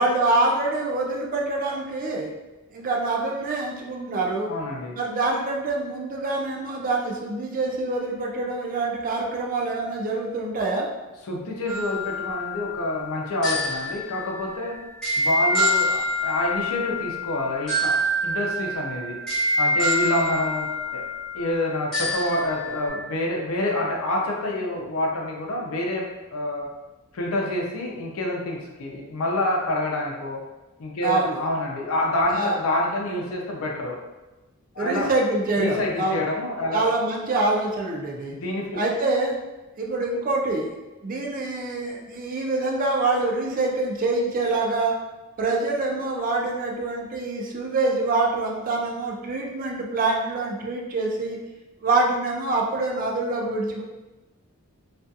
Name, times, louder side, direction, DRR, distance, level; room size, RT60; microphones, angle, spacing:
voice 1, 0.0-2.3 2.7-4.5 4.9-10.9 31.0-31.4 32.3-32.6 34.8-36.2 36.7-38.4 38.8-39.3 39.8-40.7 41.0-44.9 45.4-51.4 51.8-53.8, right 2 dB, 40° right, 0 dB, 0.4 m, -25 dB
voice 2, 4.5-5.0 11.3-14.8 15.2-18.0 18.2-19.2 19.6-20.7 20.9-21.0 21.3-26.7 27.1-30.4 30.8-34.0 34.7-35.1 35.6-36.9 38.3-38.8, left 1 dB, 65° left, -1 dB, 0.5 m, -27 dB
sound 1, 11.7-22.9, left 1 dB, 5° left, 0.7 m, -27 dB
2.4 x 2.3 x 2.6 m, 1.1 s
head